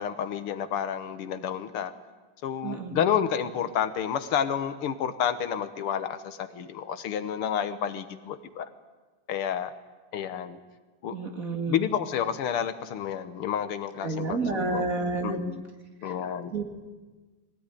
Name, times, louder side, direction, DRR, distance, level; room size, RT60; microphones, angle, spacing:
voice 1, 0.0-1.9 2.4-8.7 9.3-9.7 10.1-10.6 11.0-11.2 11.7-14.8 15.2-15.6 16.0-16.5, left 8 dB, 80° left, 11 dB, 2.1 m, -30 dB
voice 2, 2.6-3.0 11.1-11.8 14.0-15.4 16.5-16.6, right 3 dB, 40° right, 4 dB, 2.5 m, -30 dB
22.0 x 17.0 x 10.0 m, 1.3 s
omnidirectional pair, 2.4 m